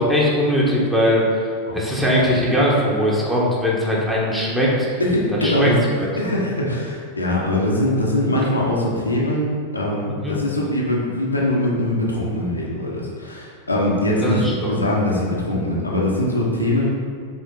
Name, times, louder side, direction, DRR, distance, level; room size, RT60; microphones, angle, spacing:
voice 1, 0.0-1.5 1.7-4.9 5.4-5.7 6.0-6.1 10.2-10.3 14.2-14.5, equal, 5° right, -5 dB, 1.3 m, -20 dB
voice 2, 1.7-2.0 5.0-5.7 6.2-16.9, left 1 dB, 85° left, -4 dB, 1.1 m, -22 dB
6.8 x 3.6 x 3.8 m, 2.2 s
figure-of-eight pair, 90°, 0 cm